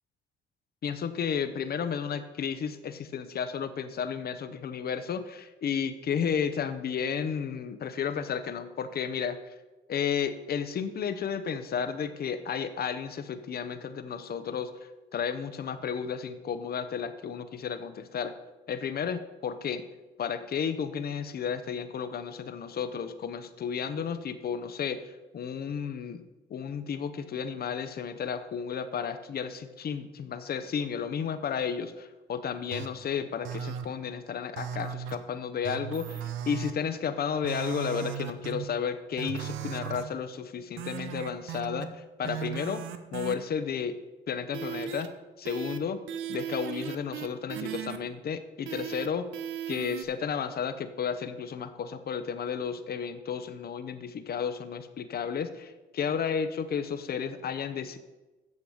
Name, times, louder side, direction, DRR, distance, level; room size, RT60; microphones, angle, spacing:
voice 1, 0.8-9.5 9.9-14.7 15.1-18.3 18.7-19.8 20.2-42.8 43.1-44.0 44.3-45.1 45.4-46.0 46.3-49.3 49.7-58.0, left 7 dB, 50° left, 11 dB, 0.8 m, -33 dB
sound 1, 32.7-32.9 33.4-33.8 34.6-35.1 35.6-36.7 37.4-38.6 39.2-40.0 40.8-41.8 42.2-43.3 44.5-45.1 45.4-45.8 46.1-48.0 48.7-49.1 49.3-50.0, right 9 dB, 85° right, 0.7 m, -36 dB
8.6 x 6.6 x 4.9 m, 1.1 s
cardioid pair, 90°, 20 cm